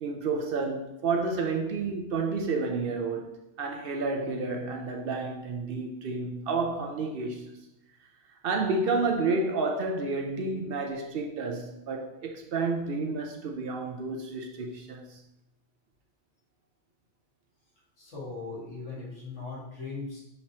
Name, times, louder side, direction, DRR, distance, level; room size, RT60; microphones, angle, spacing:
voice 1, 0.0-7.6 8.4-15.2, right 3 dB, 60° right, 0.7 m, -30 dB
voice 2, 18.0-20.2, left 3 dB, 75° left, 1.9 m, -39 dB
6.5 x 2.9 x 2.8 m
omnidirectional pair, 1.2 m